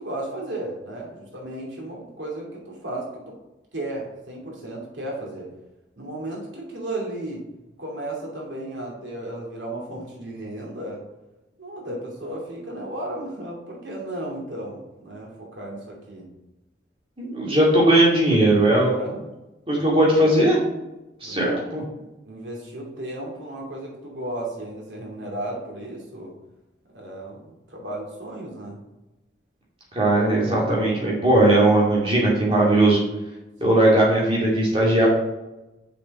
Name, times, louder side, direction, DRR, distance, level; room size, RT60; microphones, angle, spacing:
voice 1, 0.0-3.4 3.7-5.5 6.0-7.5 7.8-11.0 11.6-16.3 18.8-19.2 21.2-21.7 22.0-26.4 26.9-28.8 33.6-33.8, right 1 dB, 85° right, -3 dB, 2.6 m, -34 dB
voice 2, 17.2-18.9 19.7-20.6 21.2-21.8 29.9-33.0 33.6-35.1, right 1 dB, 30° right, -4 dB, 2.3 m, -18 dB
6.9 x 5.8 x 4.3 m, 1.0 s
head